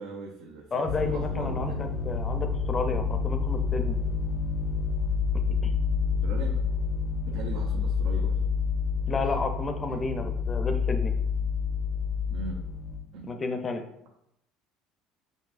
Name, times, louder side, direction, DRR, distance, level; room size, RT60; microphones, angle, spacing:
voice 1, 0.0-1.8 6.2-6.6 7.3-8.4 9.2-9.3 12.3-12.6 13.1-13.5, right 4 dB, 80° right, -1 dB, 0.6 m, -40 dB
voice 2, 0.7-4.0 5.6-5.7 9.1-11.1 13.3-13.8, left 3 dB, 25° left, 6 dB, 0.5 m, -31 dB
sound 1, 0.8-13.0, left 5 dB, 75° left, 0.6 m, -28 dB
5.5 x 2.7 x 2.5 m, 0.78 s
cardioid pair, 120°, 0 cm